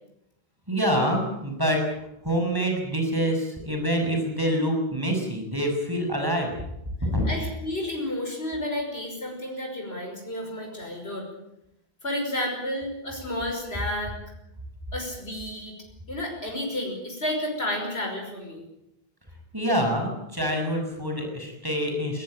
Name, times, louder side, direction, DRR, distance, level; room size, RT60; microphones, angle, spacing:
voice 1, 0.7-1.9 2.2-6.5 7.0-7.3 19.5-22.2, equal, 20° right, 2 dB, 6.4 m, -26 dB
voice 2, 7.2-11.3 12.0-14.2 14.9-15.7 16.1-18.6, left 1 dB, 85° left, 1 dB, 6.0 m, -31 dB
21.5 x 19.0 x 8.8 m, 0.83 s
omnidirectional pair, 1.0 m